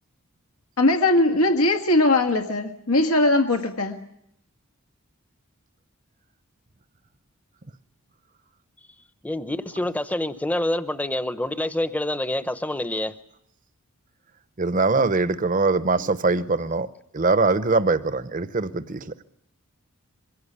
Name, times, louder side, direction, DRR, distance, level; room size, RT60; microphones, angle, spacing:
voice 1, 0.8-4.0, left 2 dB, 90° left, 5 dB, 1.8 m, -20 dB
voice 2, 9.2-13.1, left 1 dB, 5° left, 12 dB, 0.8 m, -27 dB
voice 3, 14.6-16.9 17.1-19.1, right 3 dB, 35° right, 14 dB, 0.8 m, -22 dB
23.5 x 16.5 x 9.9 m, 0.74 s
head